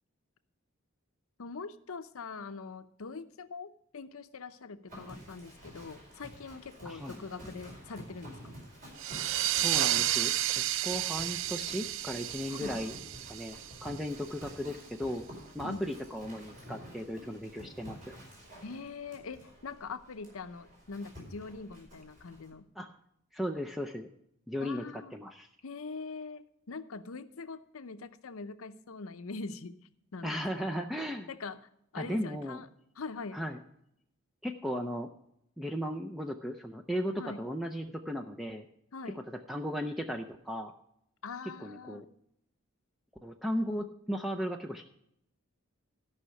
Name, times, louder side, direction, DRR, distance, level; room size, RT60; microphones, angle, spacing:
voice 1, 1.4-8.6 12.5-12.8 15.6-15.8 18.6-22.7 24.6-25.1 25.6-29.8 30.1-30.7 31.3-31.6 31.9-32.7 33.0-33.4 37.1-37.4 38.9-39.2 41.2-42.1, left 4 dB, 80° left, 12 dB, 0.7 m, -43 dB
Livestock farm animals working animals, 4.9-22.5, equal, 40° right, 4.7 m, -50 dB
voice 2, 6.8-7.6 9.4-12.9 13.3-15.2 15.5-18.1 22.8-22.9 23.3-24.1 24.5-25.5 30.2-31.3 32.0-32.6 33.3-33.6 34.4-35.1 35.6-38.7 39.2-40.7 41.6-42.1 43.2-44.8, equal, ahead, 3 dB, 0.5 m, -36 dB
sound 1, 9.0-14.3, right 13 dB, 65° right, 0.4 m, -32 dB
13.0 x 5.7 x 6.4 m, 0.76 s
head